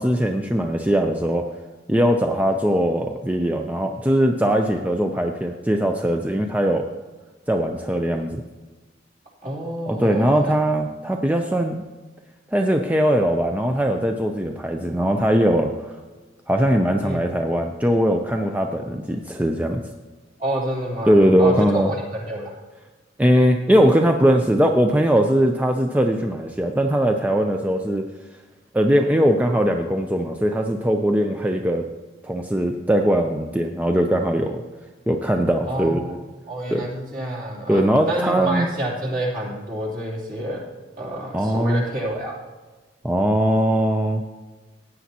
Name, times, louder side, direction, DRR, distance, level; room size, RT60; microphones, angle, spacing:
voice 1, 0.0-1.5 1.9-6.8 7.5-8.4 9.9-11.9 12.5-16.0 16.5-19.8 21.1-21.9 23.2-28.0 28.7-31.9 32.2-34.6 35.1-36.2 36.7-36.9 37.7-38.7 41.3-41.8 43.0-44.2, equal, 10° right, 3 dB, 0.5 m, -20 dB
voice 2, 9.4-10.5 17.0-17.2 20.4-22.5 35.6-36.2 36.5-40.6 41.0-42.3, right 1 dB, 50° right, -3 dB, 3.0 m, -28 dB
15.5 x 9.3 x 2.9 m, 1.2 s
head